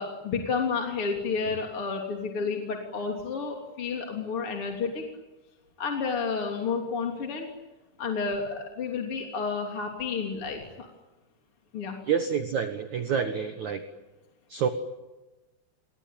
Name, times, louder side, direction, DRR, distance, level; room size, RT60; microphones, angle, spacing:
voice 1, 0.0-5.0 5.8-7.5 8.0-10.9 11.7-12.0, left 5 dB, 35° left, 2 dB, 3.5 m, -31 dB
voice 2, 12.1-13.8 14.5-14.7, right 7 dB, 60° right, 8 dB, 2.1 m, -28 dB
29.0 x 22.5 x 9.0 m, 1.1 s
omnidirectional pair, 5.2 m